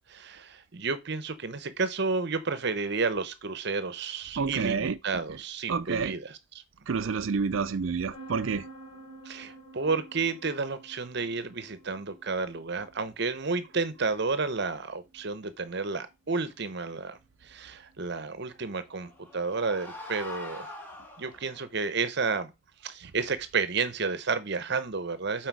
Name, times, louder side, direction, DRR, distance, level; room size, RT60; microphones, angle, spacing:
voice 1, 0.0-6.4 9.3-17.2 17.4-20.7 21.2-22.5 22.8-25.5, right 4 dB, 55° right, 0.8 m, -31 dB
voice 2, 4.4-5.0 5.7-6.1 6.9-8.7, right 5 dB, 70° right, 0.5 m, -28 dB
sound 1, 8.1-19.6, right 2 dB, 55° left, 3.1 m, -52 dB
sound 2, 18.7-21.7, left 1 dB, 10° left, 1.5 m, -43 dB
7.8 x 4.6 x 4.6 m
head